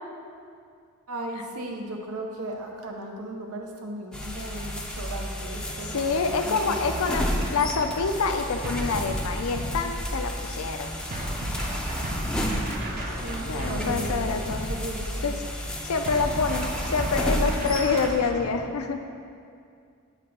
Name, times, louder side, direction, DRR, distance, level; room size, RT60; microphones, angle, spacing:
voice 1, 1.1-6.2 6.4-7.1 13.2-15.4, right 1 dB, 85° right, 2 dB, 0.8 m, -36 dB
sound 1, 4.1-18.1, equal, 5° left, 0.5 m, -32 dB
voice 2, 5.9-7.3 7.5-10.9 13.5-14.7 15.2-15.4 15.8-19.0, left 4 dB, 70° left, 6 dB, 0.5 m, -27 dB
sound 2, 8.6-10.4 11.1-15.3 16.1-18.5, right 1 dB, 40° right, 0.7 m, -33 dB
7.3 x 3.4 x 5.3 m, 2.3 s
head